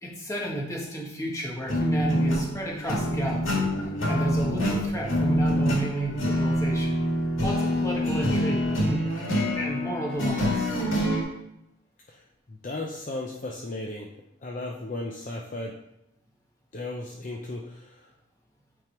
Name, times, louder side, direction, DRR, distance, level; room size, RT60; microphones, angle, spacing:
voice 1, 0.0-3.7 4.0-7.0 7.4-9.1 9.5-10.7, right 1 dB, 15° left, -2 dB, 1.3 m, -32 dB
sound 1, 1.7-11.2, equal, 80° left, 1.9 m, -26 dB
voice 2, 12.5-14.1 14.4-15.8 16.7-18.0, left 2 dB, 40° left, -1 dB, 0.6 m, -35 dB
9.0 x 3.6 x 4.5 m, 0.83 s
head